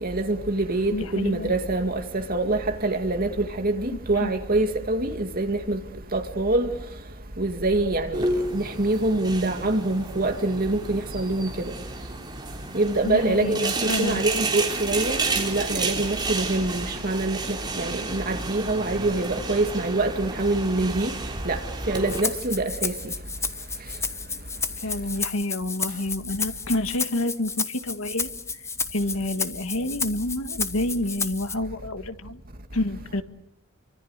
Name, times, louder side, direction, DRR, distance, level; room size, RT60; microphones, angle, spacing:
voice 1, 0.0-5.8 6.1-6.7 7.4-8.2 8.5-11.5 12.7-13.6 14.0-17.4 17.8-21.1 21.5-21.6 21.9-22.9, right 2 dB, 40° right, 2.3 m, -25 dB
voice 2, 0.9-1.5 3.9-4.3 13.0-14.2 24.8-28.6 28.9-32.4 32.7-33.2, left 1 dB, 70° left, 1.5 m, -29 dB
sound 1, 8.1-22.2, right 3 dB, 20° right, 3.5 m, -31 dB
Rattle (instrument), 21.9-31.5, left 5 dB, 15° left, 1.0 m, -31 dB
29.0 x 25.0 x 6.6 m
head